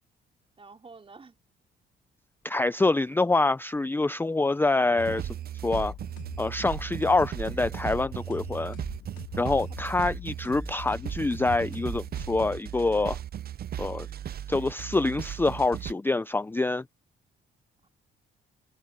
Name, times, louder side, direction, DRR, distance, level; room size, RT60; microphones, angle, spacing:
voice 1, 0.6-1.4 9.4-9.6 17.8-17.9, right 4 dB, 30° right, 3.1 m, -50 dB
voice 2, 2.4-5.3 5.6-5.9 6.4-8.7 9.4-13.2 13.8-14.1 14.5-16.8, left 3 dB, 10° left, 0.5 m, -26 dB
sound 1, 5.0-15.9, right 10 dB, 50° right, 0.7 m, -36 dB
sound 2, 5.7-12.9, left 13 dB, 75° left, 1.2 m, -45 dB
cardioid pair, 90°, 20 cm